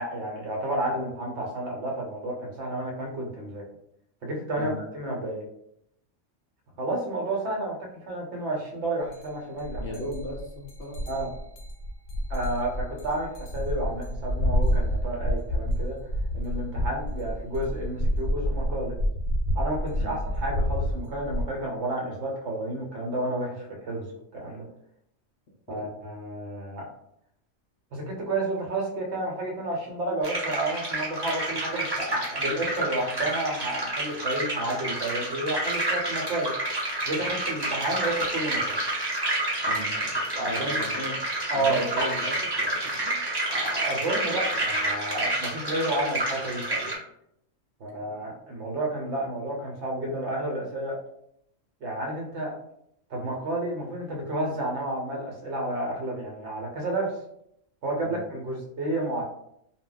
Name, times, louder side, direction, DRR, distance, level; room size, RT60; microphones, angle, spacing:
voice 1, 0.0-3.6 4.2-5.4 6.8-7.8 8.1-10.0 11.1-11.3 12.3-16.0 16.3-18.9 19.5-24.7 25.7-26.8 27.9-36.5 37.1-38.8 40.3-40.8 41.5-41.9 43.5-46.9 47.8-51.0 51.8-52.5 53.1-57.1 57.8-59.2, right 1 dB, 65° right, 0 dB, 1.0 m, -31 dB
sound 1, 9.1-9.3 9.6-21.4, equal, 85° left, 1.0 m, -29 dB
voice 2, 9.8-11.2 20.0-20.1 25.7-25.9 39.6-41.3 41.5-43.2 58.0-58.2, equal, 65° left, 0 dB, 0.7 m, -38 dB
sound 2, 30.2-46.9, right 1 dB, 25° right, 0.6 m, -29 dB
2.2 x 2.1 x 3.7 m, 0.75 s
omnidirectional pair, 1.3 m